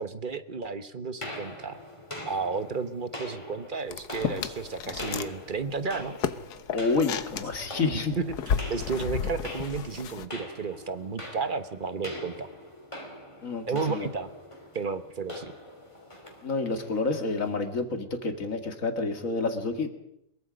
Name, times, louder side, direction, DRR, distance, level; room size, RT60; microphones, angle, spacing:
voice 1, 0.0-1.8 2.3-6.2 8.2-12.5 13.7-14.3 14.7-15.5, right 4 dB, 35° right, 11 dB, 1.1 m, -32 dB
sound 1, 1.2-17.6, left 1 dB, 15° left, 3.2 m, -42 dB
sound 2, 3.9-5.3 5.6-10.3, left 7 dB, 75° left, 1.5 m, -33 dB
voice 2, 6.7-8.2 13.4-14.1 16.4-19.9, left 3 dB, 50° left, 6 dB, 2.4 m, -29 dB
22.5 x 22.0 x 5.2 m, 0.80 s
omnidirectional pair, 1.8 m